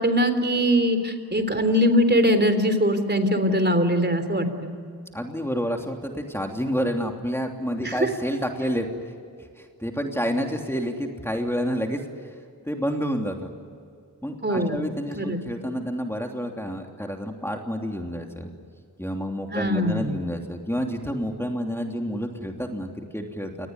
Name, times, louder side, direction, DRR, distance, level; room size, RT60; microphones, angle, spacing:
voice 1, 0.0-4.7 7.8-8.1 14.4-14.8 15.2-15.4 19.5-20.2, equal, 30° right, 9 dB, 3.7 m, -22 dB
voice 2, 5.1-8.9 9.6-12.0 12.6-13.5 14.2-18.5 19.0-23.7, equal, 5° left, 3 dB, 3.1 m, -29 dB
28.5 x 20.0 x 9.6 m, 2.3 s
wide cardioid pair, 65°, 37 cm